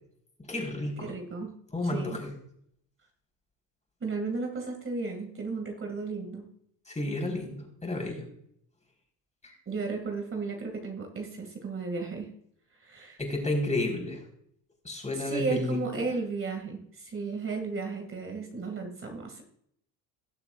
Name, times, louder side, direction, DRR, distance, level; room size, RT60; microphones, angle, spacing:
voice 1, 0.5-1.1 1.7-2.2 6.9-8.2 9.4-9.6 13.2-14.2 14.8-15.8, left 2 dB, 15° left, 1 dB, 4.3 m, -31 dB
voice 2, 1.0-1.5 1.8-2.2 4.0-6.5 9.7-12.3 12.8-13.2 15.1-19.4, right 4 dB, 30° right, 3 dB, 2.3 m, -34 dB
19.5 x 6.9 x 2.5 m, 0.70 s
supercardioid pair, 80°, 40 cm